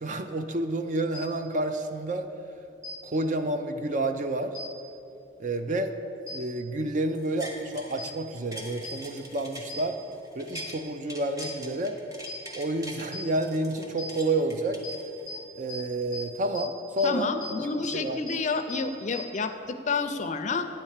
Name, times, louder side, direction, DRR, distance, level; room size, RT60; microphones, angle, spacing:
voice 1, 0.0-2.3 3.0-4.5 5.4-5.9 6.3-10.0 10.4-12.0 12.5-14.8 15.6-17.3 17.9-18.2, right 2 dB, 45° right, 8 dB, 0.5 m, -29 dB
sound 1, 1.1-1.2 2.8-2.9 4.5-4.6 6.3-6.4 8.0-8.1 8.8-8.9 9.7-9.8 10.5-10.6 11.4-11.5 12.3-12.4 13.1-13.2 14.0-14.1 14.8-14.9 15.3-15.4 15.7-15.8 16.1-16.2 16.5-16.6 17.0-17.1 17.4-17.5 17.8-17.9 18.3-18.4 18.7-18.8 19.1-19.2, left 3 dB, 80° right, 2.3 m, -38 dB
sound 2, 7.1-8.0 8.3-10.8 11.1-13.1 13.4-15.4 15.9-16.0, equal, 20° right, 1.0 m, -43 dB
voice 2, 17.0-20.7, left 4 dB, 40° left, 8 dB, 0.4 m, -29 dB
9.1 x 4.3 x 7.3 m, 2.7 s
head